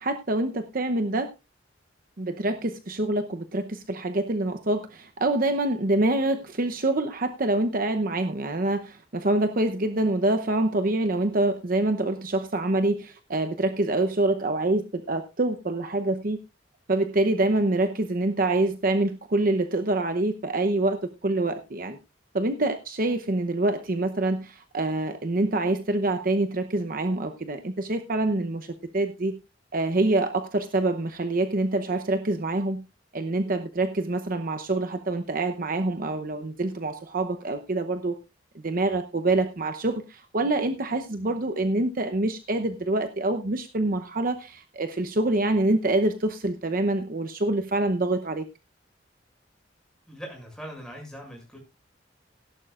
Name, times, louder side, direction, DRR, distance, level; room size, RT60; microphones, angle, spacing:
voice 1, 0.0-1.3 2.2-16.4 16.9-21.0 21.2-22.0 22.3-28.7 28.9-29.4 29.7-32.8 33.1-38.2 38.5-48.4, right 2 dB, 50° right, 7 dB, 0.8 m, -26 dB
voice 2, 50.1-51.6, equal, 5° left, -1 dB, 6.7 m, -41 dB
16.5 x 11.5 x 2.5 m, 0.26 s
head